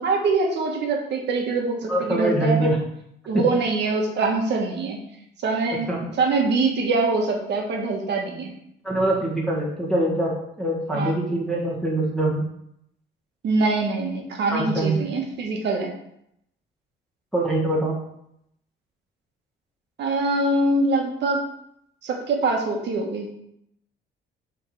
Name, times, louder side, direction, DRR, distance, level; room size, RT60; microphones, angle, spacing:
voice 1, 0.0-2.7 3.3-5.0 5.4-8.5 10.9-11.2 13.4-15.9 20.0-21.4 22.0-23.3, right 3 dB, 65° right, 1 dB, 1.6 m, -24 dB
voice 2, 1.9-2.8 3.3-3.4 5.9-6.0 8.8-10.3 10.6-12.4 14.5-15.0 17.3-18.0, right 1 dB, ahead, -4 dB, 1.8 m, -23 dB
7.0 x 3.8 x 5.0 m, 0.74 s
cardioid pair, 125°, 19 cm